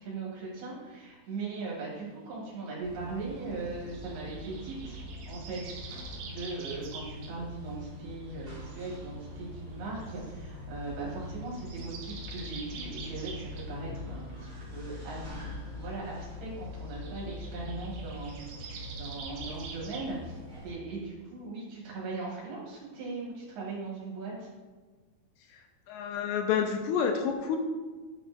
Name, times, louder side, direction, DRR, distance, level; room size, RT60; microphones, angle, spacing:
voice 1, 0.0-15.4 15.7-18.3 18.6-24.5, right 3 dB, 65° right, -5 dB, 3.3 m, -39 dB
sound 1, 2.8-20.7, left 1 dB, 45° right, 0.9 m, -43 dB
sound 2, 3.9-7.3 7.9-9.0 10.0-10.1 11.5-13.7 16.9-20.1, right 5 dB, 85° right, 2.0 m, -46 dB
voice 2, 25.9-27.6, left 7 dB, 85° left, 4 dB, 2.4 m, -29 dB
9.3 x 6.3 x 2.5 m, 1.3 s
omnidirectional pair, 5.2 m